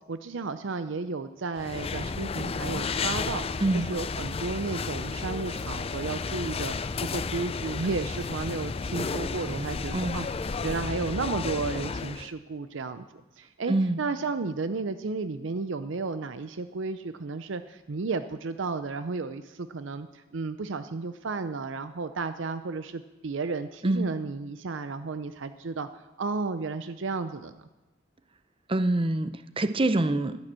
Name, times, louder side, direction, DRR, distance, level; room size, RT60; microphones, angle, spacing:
voice 1, 0.1-10.3 10.6-13.1 13.4-25.9 26.2-27.7, right 4 dB, 65° right, 11 dB, 0.6 m, -33 dB
sound 1, 1.6-12.3, left 4 dB, 30° left, 0.4 m, -32 dB
voice 2, 13.7-14.0 23.8-24.1 28.7-30.4, right 2 dB, 25° right, 11 dB, 0.6 m, -25 dB
12.0 x 10.5 x 7.5 m, 1.0 s
head